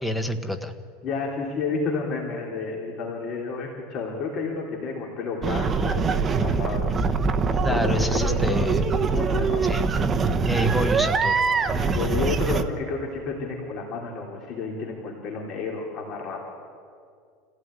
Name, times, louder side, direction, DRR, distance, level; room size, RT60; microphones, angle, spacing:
voice 1, 0.0-0.7 7.6-8.8 9.6-10.0 10.5-11.4, left 1 dB, 5° left, 7 dB, 1.2 m, -28 dB
voice 2, 1.0-7.0 7.6-8.7 9.1-9.6 11.9-16.4, left 4 dB, 35° left, -1 dB, 3.4 m, -31 dB
sound 1, 5.4-12.6, right 4 dB, 20° right, 0.9 m, -23 dB
27.0 x 16.0 x 9.7 m, 2.3 s
supercardioid pair, 160°, 0 cm